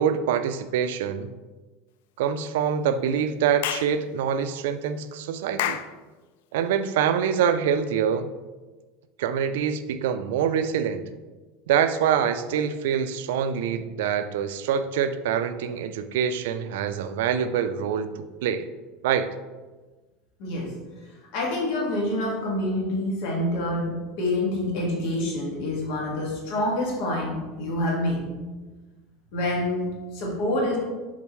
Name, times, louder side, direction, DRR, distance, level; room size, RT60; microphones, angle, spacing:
voice 1, 0.0-1.3 2.2-5.8 6.5-8.3 9.2-11.0 11.7-18.7 19.0-19.3, right 8 dB, 75° right, 11 dB, 0.4 m, -25 dB
Clapping / Chirp tweet, 3.6-3.9 5.6-5.9, left 11 dB, 75° left, 0.3 m, -28 dB
voice 2, 20.4-20.7 21.3-28.2 29.3-30.8, left 1 dB, 55° left, -2 dB, 1.8 m, -27 dB
7.2 x 4.3 x 3.1 m, 1.2 s
supercardioid pair, 170°, 0 cm